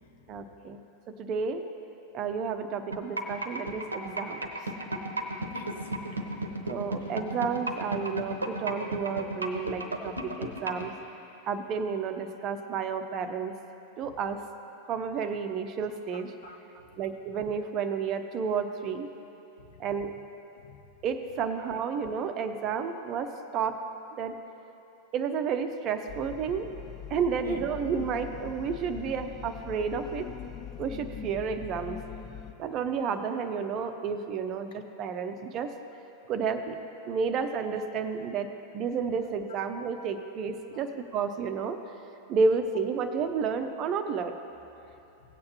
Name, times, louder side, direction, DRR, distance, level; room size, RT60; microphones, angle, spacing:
voice 1, 0.3-0.8 1.2-1.6 2.1-4.4 6.7-10.9 11.5-13.5 14.0-14.4 14.9-16.5 17.0-19.1 19.8-20.1 21.0-23.8 24.2-24.3 25.1-26.7 27.1-30.3 30.8-32.0 32.6-35.7 36.3-36.7 37.1-38.5 38.7-41.8 42.3-44.3, right 5 dB, 35° right, 8 dB, 0.7 m, -31 dB
sound 1, 2.9-10.9, right 2 dB, 80° right, 0.8 m, -33 dB
voice 2, 5.5-7.1 16.1-16.6 27.4-27.6 40.7-40.8, left 4 dB, 60° left, 4 dB, 0.8 m, -46 dB
sound 2, 26.1-32.5, left 9 dB, 30° left, 0.5 m, -42 dB
17.5 x 8.6 x 3.0 m, 2.9 s
figure-of-eight pair, 90°, 0 cm